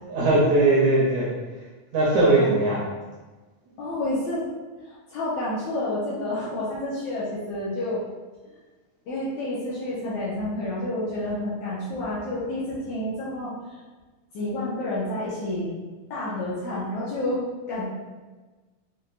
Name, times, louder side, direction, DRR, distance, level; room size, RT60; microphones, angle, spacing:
voice 1, 0.0-1.3 1.9-2.8, right 2 dB, 85° right, -6 dB, 1.6 m, -19 dB
voice 2, 2.2-2.7 3.8-4.5 4.8-8.0 9.1-13.8 14.3-15.7 16.1-17.8, left 1 dB, 80° left, -8 dB, 1.6 m, -29 dB
6.3 x 2.3 x 2.5 m, 1.3 s
omnidirectional pair, 4.2 m